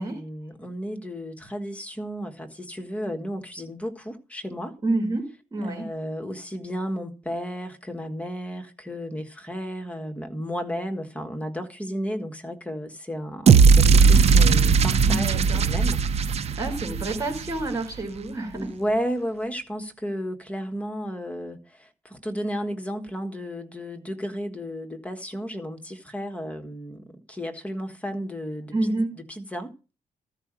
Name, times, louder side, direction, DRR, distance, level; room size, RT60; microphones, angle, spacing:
voice 1, 0.0-4.7 5.6-16.0 16.4-16.6 18.5-29.9, equal, 10° left, 1.5 m, -33 dB
voice 2, 4.8-5.3 5.5-5.9 15.1-15.6 16.6-18.6 28.7-29.1, right 2 dB, 20° right, 5.1 m, -28 dB
sound 1, 13.5-17.7, right 5 dB, 45° right, 0.6 m, -18 dB
13.5 x 4.9 x 7.5 m
cardioid pair, 135°, 14 cm